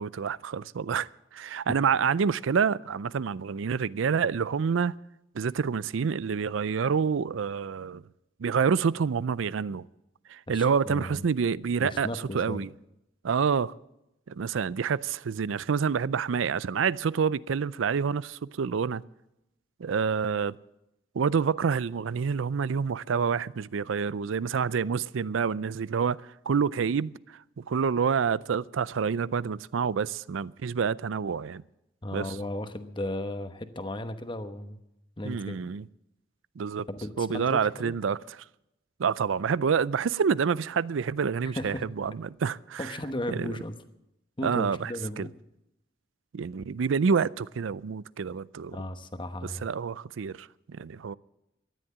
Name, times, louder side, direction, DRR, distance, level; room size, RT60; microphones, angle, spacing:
voice 1, 0.0-4.9 5.3-8.0 8.4-9.8 10.3-12.1 12.3-12.7 13.2-13.7 14.3-19.0 19.8-20.5 21.1-27.1 27.6-31.6 32.1-32.4 35.2-35.8 36.6-36.8 37.2-38.4 39.0-42.9 43.3-43.5 44.4-44.9 45.2-45.3 46.3-48.8 49.6-51.1, right 6 dB, 80° right, 0.4 m, -28 dB
voice 2, 10.5-11.2 11.8-12.7 32.0-34.8 35.2-35.6 36.9-38.0 41.4-41.8 42.8-43.8 44.4-45.3 48.7-49.7, left 1 dB, 25° left, 1.0 m, -35 dB
13.5 x 11.0 x 8.6 m
head